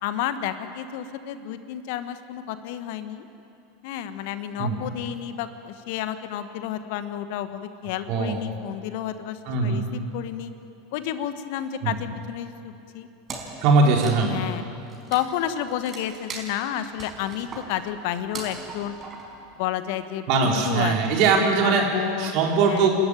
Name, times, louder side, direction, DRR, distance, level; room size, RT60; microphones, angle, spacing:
voice 1, 0.0-3.2 3.8-10.5 10.9-13.1 14.3-14.6 15.1-19.0 19.6-22.4 22.7-22.9, left 11 dB, 60° left, 11 dB, 1.3 m, -31 dB
voice 2, 8.1-8.4 9.5-9.8 11.8-11.9 13.6-14.3 20.3-21.9 22.2-22.9, right 4 dB, 55° right, 0 dB, 4.3 m, -20 dB
Wood, 13.3-20.0, right 3 dB, 30° right, 5.2 m, -41 dB
28.5 x 13.0 x 9.3 m, 2.9 s
figure-of-eight pair, 80°, 0 cm